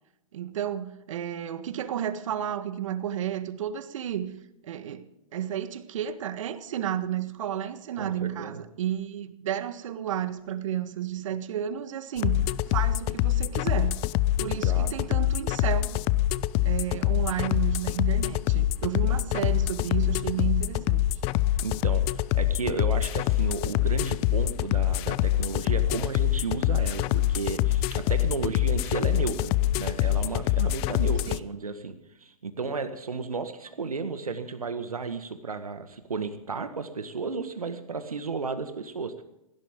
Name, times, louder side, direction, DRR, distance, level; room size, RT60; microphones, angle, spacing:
voice 1, 0.3-4.4 4.6-14.0 14.4-16.0 16.6-21.0 31.2-31.4, right 10 dB, 60° right, 1.6 m, -32 dB
voice 2, 8.0-8.6 14.5-14.9 19.0-19.2 21.6-39.2, right 4 dB, 90° right, 1.8 m, -33 dB
sound 1, 12.2-31.4, left 14 dB, 35° left, 0.6 m, -25 dB
19.5 x 16.5 x 3.8 m
hypercardioid pair, 120°, 18 cm